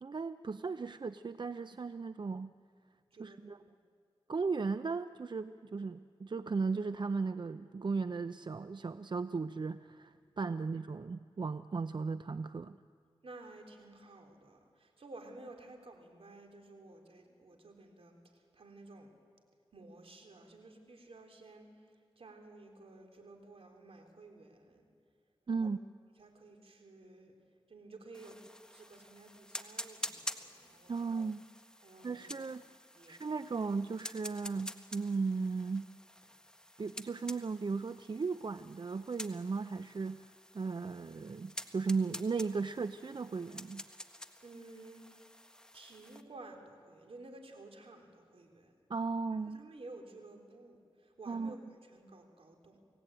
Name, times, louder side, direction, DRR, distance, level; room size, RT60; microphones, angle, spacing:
voice 1, 0.0-2.5 3.2-3.6 4.3-12.8 25.5-25.8 30.9-31.5 32.0-32.6 33.1-35.9 36.8-43.8 48.9-49.6 51.3-51.5, right 4 dB, 50° right, 12 dB, 0.6 m, -36 dB
voice 2, 3.1-3.8 10.4-10.7 13.2-19.1 19.7-21.8 22.2-24.9 25.5-25.8 26.2-27.3 27.7-28.4 28.7-31.2 31.8-32.5 32.9-33.4 44.4-45.2 45.7-48.7 49.5-52.8, right 2 dB, 75° right, 3 dB, 3.7 m, -53 dB
sound 1, 28.1-46.2, left 1 dB, 10° left, 1.5 m, -48 dB
29.0 x 18.5 x 9.0 m, 2.2 s
cardioid pair, 55°, 10 cm